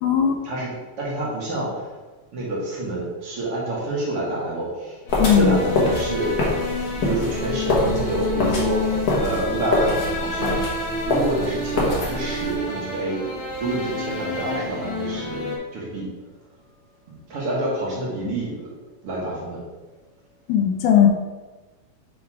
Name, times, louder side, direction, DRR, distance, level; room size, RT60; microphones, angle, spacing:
voice 1, 0.0-0.4 5.2-5.6 20.5-21.1, left 9 dB, 90° left, 2 dB, 2.3 m, -17 dB
voice 2, 1.0-1.8 2.3-5.0 5.3-6.4 7.0-8.9 9.2-10.6 11.1-13.2 13.6-15.4 15.7-16.1 17.3-18.5 19.0-19.6, right 2 dB, 55° right, -6 dB, 2.3 m, -27 dB
sound 1, 5.1-15.6, left 2 dB, 70° left, 2.7 m, -29 dB
sound 2, 5.1-12.5, left 1 dB, 55° left, 1.1 m, -25 dB
7.4 x 3.5 x 4.7 m, 1.2 s
omnidirectional pair, 3.4 m